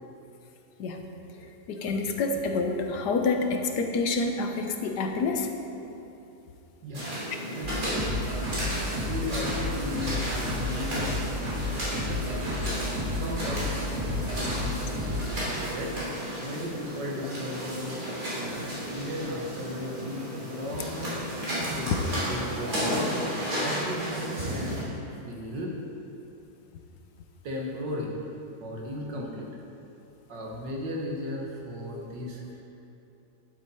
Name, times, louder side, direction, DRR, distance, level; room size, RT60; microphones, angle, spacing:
voice 1, 1.7-5.5 31.9-32.1, left 3 dB, 75° left, 4 dB, 1.4 m, -28 dB
voice 2, 6.8-7.2 7.5-8.2 9.1-11.5 12.1-12.4 13.2-14.9 15.6-18.0 18.3-21.1 21.7-24.8 25.2-25.7 27.4-28.1 28.6-29.5 30.3-32.6, left 1 dB, 90° right, -2 dB, 2.1 m, -36 dB
sound 1, 6.9-24.8, equal, 55° right, 3.3 m, -33 dB
sound 2, 7.6-15.3, left 1 dB, 40° right, 2.7 m, -32 dB
11.5 x 8.1 x 4.3 m, 2.8 s
omnidirectional pair, 1.8 m